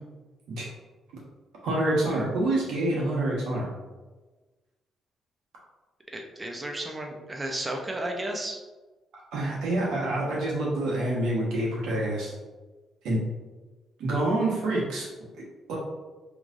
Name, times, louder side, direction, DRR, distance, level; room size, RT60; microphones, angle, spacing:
voice 1, 1.6-3.7 9.3-12.3 13.0-13.2 14.0-15.1 15.7-15.8, right 1 dB, 85° right, -4 dB, 1.3 m, -27 dB
voice 2, 6.1-8.6, right 1 dB, 20° right, 2 dB, 0.7 m, -33 dB
5.0 x 3.2 x 2.6 m, 1.2 s
cardioid pair, 90°, 0 cm